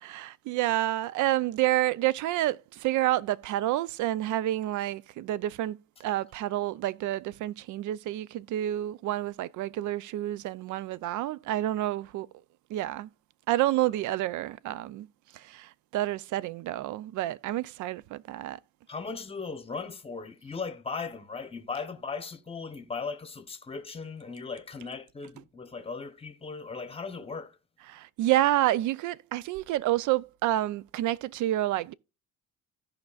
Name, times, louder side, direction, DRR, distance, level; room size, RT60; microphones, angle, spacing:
voice 1, 0.0-12.3 12.7-13.1 13.5-15.1 15.3-18.6 27.9-31.9, right 14 dB, 65° right, 0.5 m, -29 dB
voice 2, 18.9-27.6, left 4 dB, 20° left, 0.9 m, -38 dB
15.5 x 5.2 x 2.4 m
cardioid pair, 125°, 32 cm